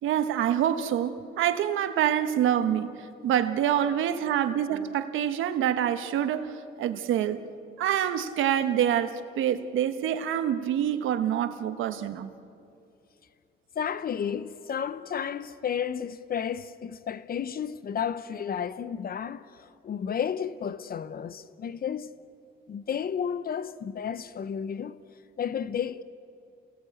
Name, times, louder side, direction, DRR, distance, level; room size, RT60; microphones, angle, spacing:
voice 1, 0.0-7.4 7.8-12.3, right 10 dB, 85° right, 1.2 m, -26 dB
voice 2, 13.8-22.1 22.7-25.0 25.4-26.0, left 8 dB, 50° left, 0.7 m, -32 dB
28.5 x 18.0 x 8.4 m
cardioid pair, 90°, 20 cm